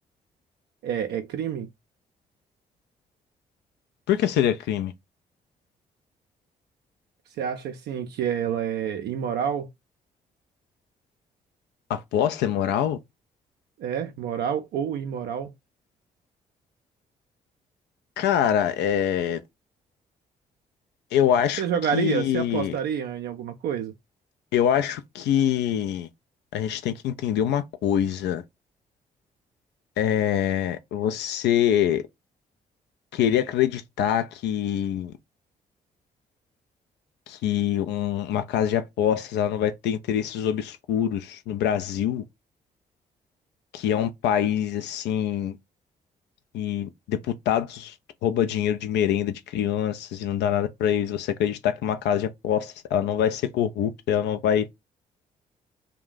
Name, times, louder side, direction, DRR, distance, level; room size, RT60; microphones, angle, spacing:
voice 1, 0.8-1.7 7.4-9.7 13.8-15.5 21.6-23.9, right 8 dB, 55° right, 0.4 m, -28 dB
voice 2, 4.1-4.9 11.9-13.0 18.2-19.4 21.1-21.6 21.9-22.7 24.5-26.1 26.5-28.4 30.0-32.0 33.1-35.1 37.3-42.2 43.7-45.6 46.5-47.9 48.2-54.7, left 10 dB, 60° left, 0.4 m, -24 dB
2.4 x 2.1 x 3.7 m
figure-of-eight pair, 40°, 20 cm